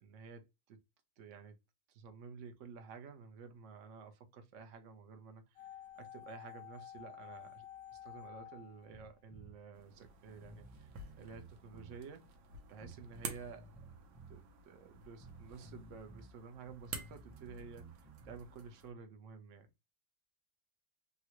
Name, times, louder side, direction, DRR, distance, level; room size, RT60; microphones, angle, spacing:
voice 1, 0.0-0.8 1.2-1.6 1.9-5.7 6.0-7.7 7.9-12.3 12.7-13.7 14.3-19.7, right 5 dB, 60° right, 0.8 m, -52 dB
sound 1, 5.6-9.7 9.9-10.0, left 11 dB, 70° left, 0.9 m, -52 dB
Bass guitar, 8.9-9.6 10.0-10.1 10.4-12.0 12.8-14.4 15.2-16.3 16.6-18.5, right 3 dB, 10° right, 0.4 m, -55 dB
sound 2, 9.7-18.9, right 5 dB, 75° right, 1.4 m, -51 dB
3.7 x 2.2 x 2.9 m
omnidirectional pair, 2.0 m